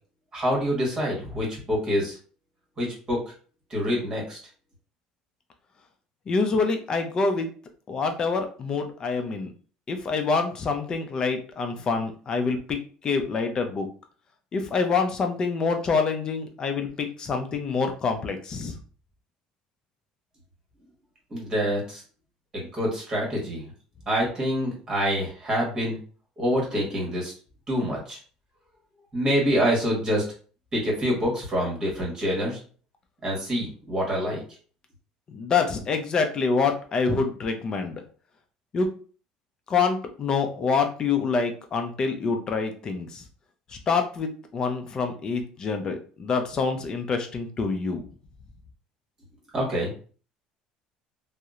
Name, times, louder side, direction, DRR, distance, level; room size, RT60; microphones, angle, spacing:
voice 1, 0.3-2.1 2.8-3.2 3.7-4.4 21.3-22.0 22.5-23.6 24.1-26.0 26.4-27.3 27.7-28.2 29.1-30.2 30.7-32.6 33.2-34.4 49.5-49.9, equal, 30° right, -2 dB, 1.2 m, -26 dB
voice 2, 6.3-7.5 7.9-9.5 9.9-12.8 13.0-13.9 14.5-18.7 35.3-38.0 38.7-38.9 39.7-43.1 43.9-48.0, left 4 dB, 35° left, 6 dB, 0.4 m, -26 dB
2.7 x 2.0 x 2.4 m, 0.41 s
cardioid pair, 130°, 2 cm